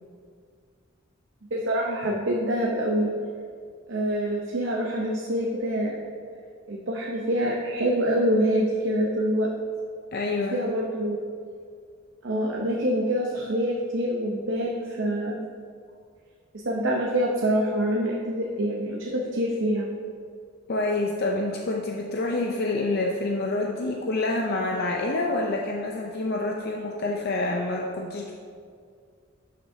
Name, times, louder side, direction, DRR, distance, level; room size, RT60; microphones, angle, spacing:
voice 1, 1.5-3.1 3.9-6.0 6.7-9.5 10.5-11.2 12.2-15.5 16.6-19.9, equal, 60° right, -2 dB, 0.8 m, -26 dB
voice 2, 10.1-10.6 20.7-28.3, left 2 dB, 50° left, 0 dB, 0.5 m, -27 dB
12.0 x 6.0 x 2.7 m, 2.2 s
head